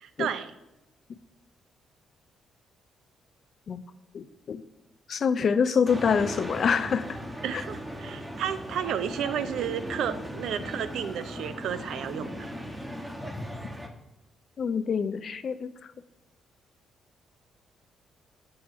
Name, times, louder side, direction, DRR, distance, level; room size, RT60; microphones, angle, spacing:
voice 1, 0.0-0.5 7.4-12.5, right 9 dB, 75° right, 12 dB, 0.5 m, -32 dB
voice 2, 4.1-4.6 5.1-7.2 14.6-15.7, left 6 dB, 50° left, 12 dB, 0.4 m, -26 dB
sound 1, 5.9-13.9, equal, 10° right, 1.1 m, -38 dB
7.7 x 4.4 x 5.5 m, 0.95 s
cardioid pair, 90°, 0 cm